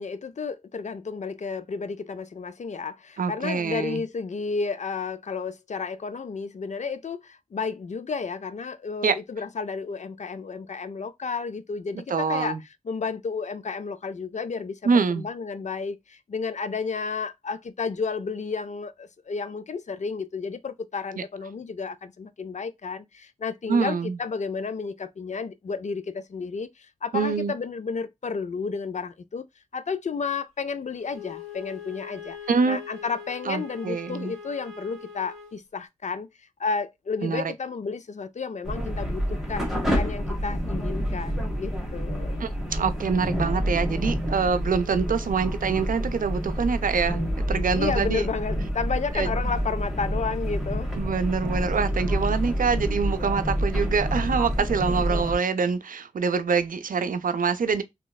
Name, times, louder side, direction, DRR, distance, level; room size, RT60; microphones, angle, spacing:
voice 1, 0.0-12.6 12.8-29.4 29.7-32.4 32.7-42.5 47.7-50.9, left 5 dB, 60° left, 0.4 m, -32 dB
voice 2, 3.2-4.0 9.0-9.2 12.1-12.6 14.8-15.3 23.7-24.2 27.1-27.5 32.5-32.8 33.5-34.3 37.2-37.4 42.4-47.2 47.5-48.2 49.1-49.3 51.0-57.8, right 5 dB, 85° right, 0.4 m, -25 dB
Wind instrument woodwind instrument, 31.1-35.6, left 7 dB, 15° left, 1.7 m, -42 dB
sound 1, 38.6-55.4, equal, ahead, 1.3 m, -28 dB
3.0 x 2.9 x 2.2 m
wide cardioid pair, 95°, 14 cm